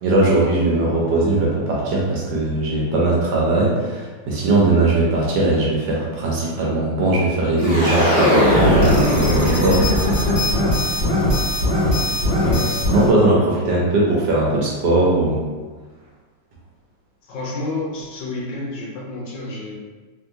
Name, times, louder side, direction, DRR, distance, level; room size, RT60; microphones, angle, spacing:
voice 1, 0.0-9.9 12.9-15.4, right 2 dB, 70° right, -4 dB, 1.2 m, -19 dB
sound 1, 7.6-13.1, left 1 dB, 40° left, 0.8 m, -19 dB
voice 2, 12.4-12.8 17.2-19.8, left 2 dB, 75° left, -4 dB, 1.2 m, -29 dB
3.0 x 2.7 x 2.6 m, 1.4 s
omnidirectional pair, 2.1 m